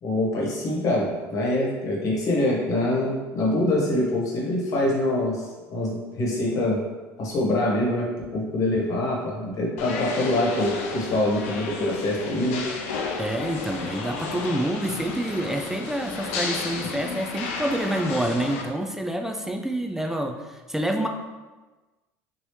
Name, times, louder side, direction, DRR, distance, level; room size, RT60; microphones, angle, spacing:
voice 1, 0.0-5.4 5.7-6.8 7.2-12.6, left 1 dB, 50° left, -3 dB, 1.2 m, -24 dB
sound 1, 9.8-18.6, left 4 dB, 85° left, 0.5 m, -32 dB
voice 2, 13.2-20.4 20.7-21.1, right 1 dB, 5° right, 3 dB, 0.3 m, -27 dB
3.0 x 2.7 x 3.1 m, 1.2 s
supercardioid pair, 100°, 7 cm